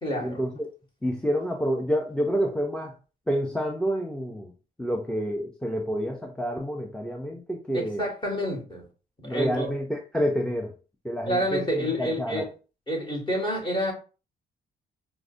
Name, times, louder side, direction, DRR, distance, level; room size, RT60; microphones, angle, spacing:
voice 1, 0.0-0.4 7.7-8.8 9.2-9.7 11.2-12.5 12.9-13.9, equal, 25° left, 1.5 m, -28 dB
voice 2, 1.0-2.9 3.3-4.5 4.8-8.0 9.2-10.7 11.0-12.5, equal, 5° left, 0.5 m, -28 dB
4.7 x 2.1 x 2.5 m
cardioid pair, 90°, 20 cm